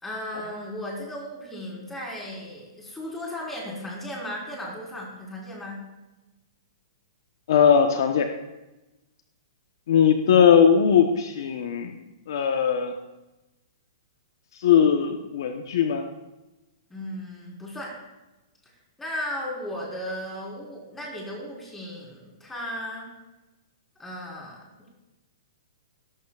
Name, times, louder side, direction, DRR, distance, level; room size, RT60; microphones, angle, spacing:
voice 1, 0.0-5.8 16.9-17.9 19.0-23.1 24.0-24.6, left 1 dB, 10° left, -3 dB, 4.2 m, -35 dB
voice 2, 7.5-8.3 9.9-11.9 12.3-13.0 14.6-16.1, left 7 dB, 65° left, 6 dB, 1.0 m, -19 dB
17.0 x 13.5 x 2.4 m, 1.0 s
hypercardioid pair, 145°, 2 cm